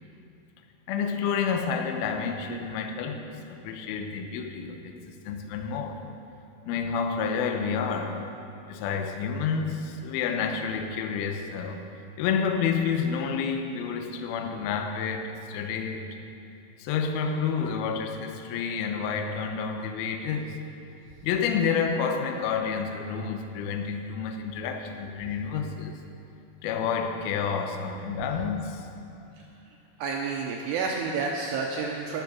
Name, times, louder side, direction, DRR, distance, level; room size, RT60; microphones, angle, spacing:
voice 1, 0.9-6.0 6.7-8.3 8.7-11.8 12.2-16.1 16.8-20.6 21.2-26.0 26.6-28.9, left 6 dB, 85° left, 5 dB, 2.1 m, -29 dB
voice 2, 30.0-32.2, right 4 dB, 80° right, 0 dB, 2.5 m, -30 dB
12.0 x 11.0 x 6.2 m, 2.7 s
omnidirectional pair, 5.6 m